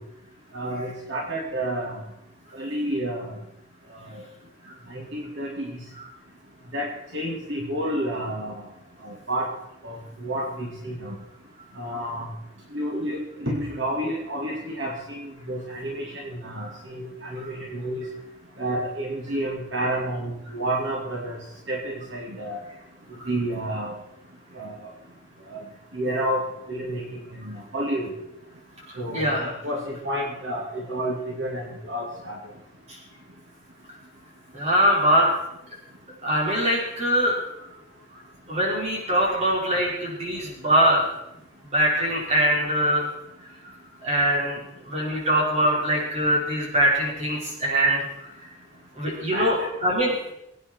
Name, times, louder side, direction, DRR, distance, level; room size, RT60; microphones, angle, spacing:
voice 1, 0.5-2.0 2.5-3.3 4.1-4.2 4.9-5.7 6.7-6.9 7.1-8.6 9.0-9.5 9.8-11.2 11.8-12.3 12.7-18.0 18.6-21.4 21.7-22.6 23.3-23.9 24.5-24.7 25.5-25.6 25.9-26.4 26.7-27.0 27.3-28.1 29.0-32.4 49.3-49.5, right 1 dB, 65° right, -2 dB, 2.6 m, -30 dB
voice 2, 29.1-29.5 32.9-33.0 34.5-35.3 36.2-37.7 38.1-38.2 38.5-41.0 41.6-43.1 44.0-48.0 48.9-50.3, right 1 dB, 30° right, -4 dB, 5.1 m, -23 dB
22.5 x 9.4 x 4.6 m, 0.84 s
head